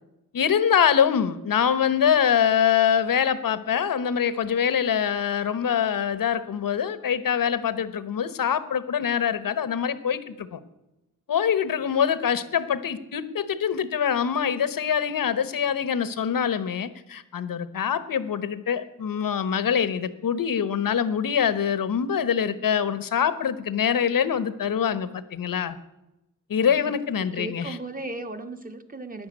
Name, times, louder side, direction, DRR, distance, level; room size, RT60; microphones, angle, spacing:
voice 1, 0.3-10.6 11.3-25.8 26.5-27.8, left 8 dB, 85° left, 14 dB, 1.1 m, -24 dB
voice 2, 26.7-29.3, right 2 dB, 25° right, 7 dB, 1.3 m, -37 dB
15.5 x 10.5 x 8.7 m, 0.95 s
wide cardioid pair, 140°, 33 cm